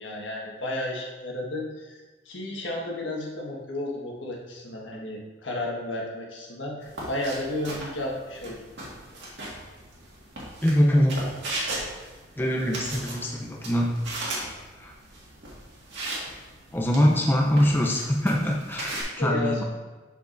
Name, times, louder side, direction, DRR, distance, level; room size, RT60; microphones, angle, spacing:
voice 1, 0.0-8.6 19.2-19.6, left 1 dB, 80° left, -2 dB, 1.5 m, -33 dB
sound 1, 6.8-19.0, right 1 dB, 70° right, 1.8 m, -37 dB
voice 2, 10.6-11.3 12.4-13.9 14.8-14.9 16.7-19.6, equal, 10° left, -2 dB, 0.6 m, -23 dB
7.2 x 6.9 x 2.6 m, 1.2 s
head